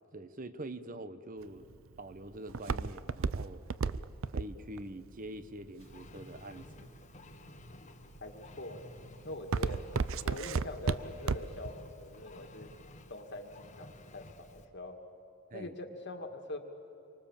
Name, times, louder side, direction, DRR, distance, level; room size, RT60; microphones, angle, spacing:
voice 1, 0.1-1.7 2.0-3.7 4.3-6.9 15.5-15.7, right 1 dB, 40° right, 12 dB, 1.0 m, -45 dB
Walk footsteps, 1.4-6.5 7.1-7.6 8.1-8.5 8.8-11.7 12.0-12.1, right 4 dB, 65° right, 0.6 m, -33 dB
Engine, 5.8-14.7, left 2 dB, 35° left, 1.4 m, -53 dB
voice 2, 8.2-8.9 9.2-9.9 10.2-12.7 13.1-15.0 15.5-16.6, left 1 dB, 55° left, 4 dB, 1.9 m, -43 dB
27.0 x 24.5 x 7.3 m, 3.0 s
head